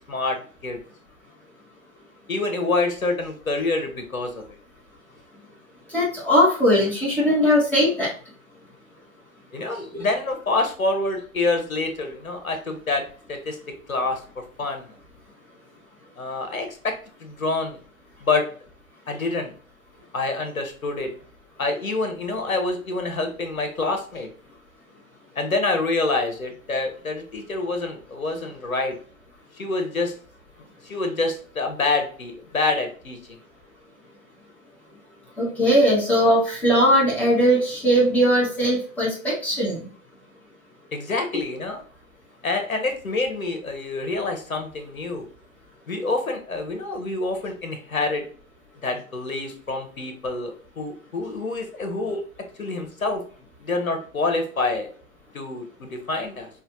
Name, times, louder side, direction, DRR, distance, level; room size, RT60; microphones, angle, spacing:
voice 1, 0.1-0.8 2.3-4.4 9.5-14.9 16.2-17.8 18.2-18.5 19.1-19.5 20.1-21.1 21.6-24.3 25.3-29.0 29.6-30.1 30.8-33.4 40.9-41.8 42.4-45.3 45.9-48.3 48.8-52.2 52.6-53.2 53.6-54.9 55.3-56.5, left 3 dB, 75° left, 5 dB, 1.1 m, -27 dB
voice 2, 5.9-8.1 35.4-39.8, equal, 5° left, -6 dB, 1.3 m, -19 dB
5.5 x 2.6 x 2.6 m, 0.41 s
figure-of-eight pair, 110°, 41 cm